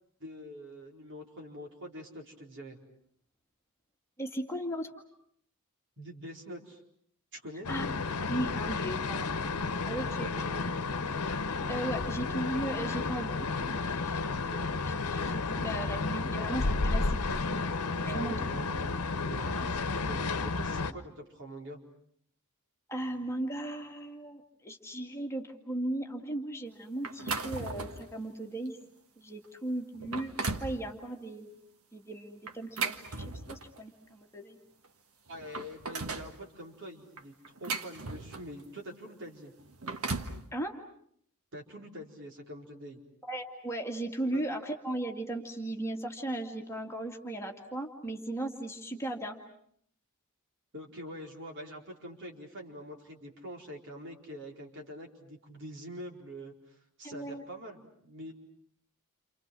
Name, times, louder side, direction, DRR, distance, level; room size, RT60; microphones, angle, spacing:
voice 1, 0.2-2.8 6.0-6.8 7.3-7.7 10.2-10.8 18.0-18.9 19.3-21.8 35.3-37.3 37.6-39.5 41.5-43.0 44.3-44.4 50.7-58.3, equal, 55° right, 1 dB, 4.5 m, -45 dB
voice 2, 4.2-4.9 7.7-7.9 8.3-9.3 9.9-10.5 11.7-17.7 18.0-18.4 19.5-19.7 22.9-28.8 29.2-31.5 31.9-34.6 40.5-40.7 43.2-49.4 57.0-57.4, right 1 dB, 10° left, 2 dB, 2.2 m, -37 dB
sound 1, 7.6-20.9, left 3 dB, 90° left, 1.0 m, -32 dB
sound 2, 27.0-28.1 28.7-28.8 29.4-29.5 30.0-30.8 32.5-33.8 34.8-34.9 35.3-36.3 37.2-38.6 39.6-40.4, right 4 dB, 70° right, 1.7 m, -36 dB
29.5 x 28.0 x 6.1 m, 0.65 s
head